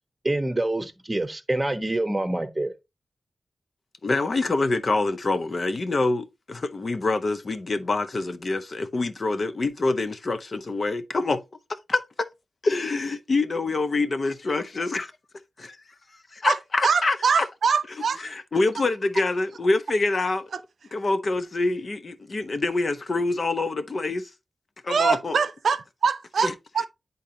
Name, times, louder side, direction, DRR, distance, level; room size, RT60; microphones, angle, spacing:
voice 1, 0.2-2.7, right 2 dB, 15° right, 1.1 m, -26 dB
voice 2, 4.0-11.4 11.9-12.0 12.6-15.1 15.6-15.8 16.3-17.5 18.2-20.5 20.9-24.3 24.8-25.4 26.4-26.5, left 3 dB, 45° left, 0.8 m, -26 dB
voice 3, 16.8-18.2 24.9-25.8 26.0-26.9, right 5 dB, 90° right, 0.6 m, -23 dB
10.0 x 3.9 x 2.8 m
wide cardioid pair, 125°, 0 cm